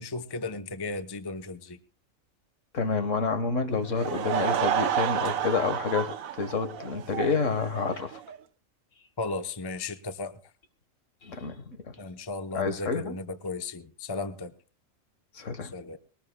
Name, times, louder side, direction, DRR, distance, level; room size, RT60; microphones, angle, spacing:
voice 1, 0.0-1.8 9.2-10.3 12.0-14.5 15.6-16.0, left 3 dB, 20° left, 0.8 m, -35 dB
voice 2, 2.7-8.2 11.2-12.0 12.5-13.2 15.4-15.7, left 5 dB, 65° left, 1.8 m, -29 dB
Laughter / Crowd, 3.8-8.4, right 9 dB, 85° right, 1.3 m, -30 dB
21.5 x 18.0 x 2.3 m
omnidirectional pair, 1.4 m